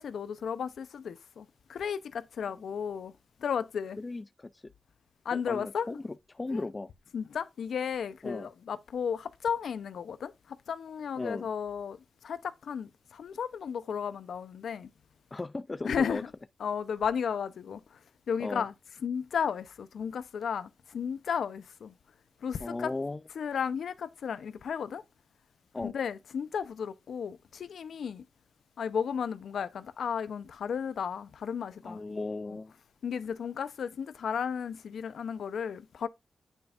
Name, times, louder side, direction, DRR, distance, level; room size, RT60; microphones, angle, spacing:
voice 1, 0.0-3.1 3.4-4.0 5.2-6.0 6.5-6.6 7.1-12.0 12.2-14.9 15.8-16.3 16.6-17.8 18.3-18.7 19.0-21.9 22.4-22.9 23.4-25.0 25.8-28.2 28.8-32.2 33.0-36.1, left 7 dB, 90° left, 0.7 m, -34 dB
voice 2, 4.0-4.7 5.3-6.9 8.2-8.5 11.2-11.5 15.3-16.2 18.4-18.7 22.6-23.2 25.7-25.9 31.8-32.7, left 3 dB, 30° left, 0.3 m, -36 dB
9.4 x 5.3 x 2.5 m
wide cardioid pair, 100°, 0 cm